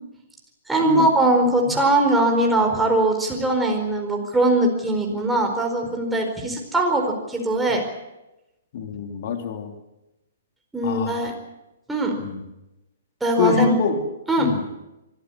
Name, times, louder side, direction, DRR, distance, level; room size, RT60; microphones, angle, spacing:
voice 1, 0.7-7.8 10.7-11.3 11.9-12.1 13.2-13.8 14.3-14.5, right 2 dB, 5° right, 1 dB, 4.6 m, -21 dB
voice 2, 8.7-9.7 10.8-11.3 12.2-12.4 13.4-14.0 14.4-14.6, left 6 dB, 50° left, 5 dB, 3.2 m, -24 dB
24.5 x 14.0 x 9.8 m, 0.97 s
figure-of-eight pair, 120°, 0 cm